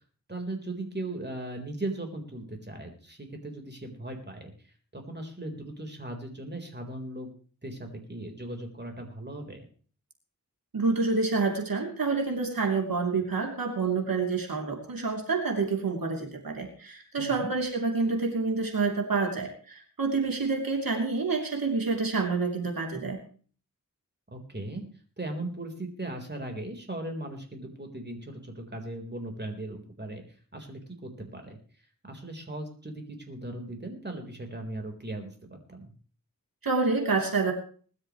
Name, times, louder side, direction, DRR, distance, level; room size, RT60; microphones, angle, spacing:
voice 1, 0.3-4.5 4.9-7.3 7.6-9.6 17.2-17.5 24.3-24.8 25.2-30.2 30.5-31.6 32.1-35.8, right 1 dB, 30° right, 3 dB, 4.0 m, -38 dB
voice 2, 10.7-23.2 36.6-37.5, right 4 dB, 85° right, 2 dB, 3.1 m, -28 dB
21.0 x 12.5 x 3.1 m, 0.42 s
wide cardioid pair, 75°, 34 cm